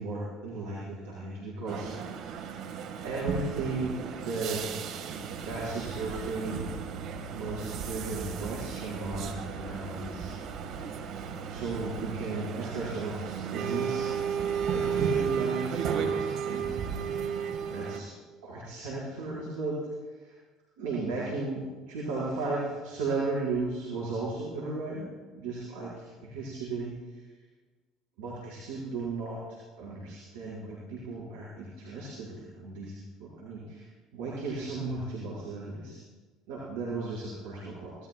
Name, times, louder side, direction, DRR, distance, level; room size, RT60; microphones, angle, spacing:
voice 1, 0.0-2.5 3.0-4.9 5.4-6.7 7.3-10.4 11.4-14.1 14.7-16.7 17.7-18.1 18.4-19.8 20.2-20.3 20.8-26.9 28.2-29.4 29.8-32.9 33.2-33.8 34.1-36.0 36.5-37.9, right 3 dB, 75° right, -7 dB, 5.2 m, -35 dB
sound 1, 1.7-18.0, right 7 dB, 60° right, 1.8 m, -34 dB
25.5 x 19.0 x 2.4 m, 1.3 s
hypercardioid pair, 65°, 0 cm